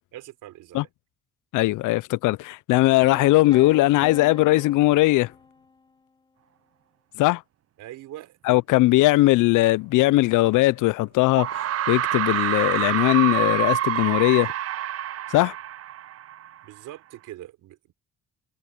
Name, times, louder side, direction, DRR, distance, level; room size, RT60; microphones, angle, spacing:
voice 1, 0.1-0.9 7.8-8.6 16.6-17.9, right 14 dB, 90° right, 4.2 m, -42 dB
voice 2, 1.5-5.3 7.2-7.4 8.5-14.5 15.3-15.5, left 19 dB, 85° left, 0.5 m, -19 dB
sound 1, 3.0-5.9, left 3 dB, 15° left, 1.0 m, -42 dB
sound 2, 10.5-10.6 11.4-16.6, right 11 dB, 55° right, 0.6 m, -27 dB
cardioid pair, 90°, 30 cm